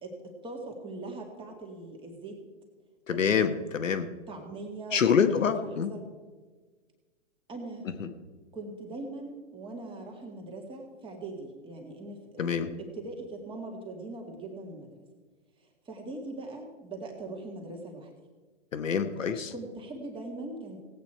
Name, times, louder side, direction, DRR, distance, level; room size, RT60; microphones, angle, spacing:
voice 1, 0.0-2.4 3.1-3.5 3.9-6.0 7.5-7.9 8.5-12.4 12.8-14.9 15.9-18.1 19.5-20.8, right 2 dB, 15° right, 2 dB, 1.9 m, -41 dB
voice 2, 3.1-4.1 4.9-5.9 8.0-8.1 12.4-12.7 18.7-19.5, left 7 dB, 85° left, 8 dB, 1.2 m, -26 dB
17.5 x 8.5 x 4.5 m, 1.4 s
hypercardioid pair, 130°, 38 cm